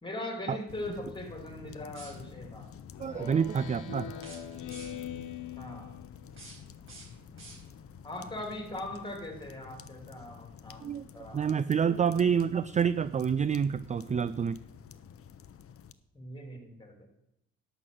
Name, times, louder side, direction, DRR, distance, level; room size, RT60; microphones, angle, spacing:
voice 1, 0.0-2.7 5.6-5.9 8.0-11.9 16.1-17.1, left 1 dB, 15° left, 4 dB, 2.8 m, -40 dB
sound 1, 0.7-15.9, left 8 dB, 50° left, 0.7 m, -49 dB
sound 2, 1.9-2.5 4.1-5.2 6.1-8.0, right 2 dB, 45° right, 4.8 m, -52 dB
Speech synthesizer, 2.9-6.4, left 8 dB, 85° left, 1.3 m, -42 dB
voice 2, 3.0-4.1 10.8-11.1 11.3-14.6, right 7 dB, 25° right, 16 dB, 0.3 m, -28 dB
11.5 x 6.1 x 7.7 m, 0.85 s
cardioid pair, 90°, 30 cm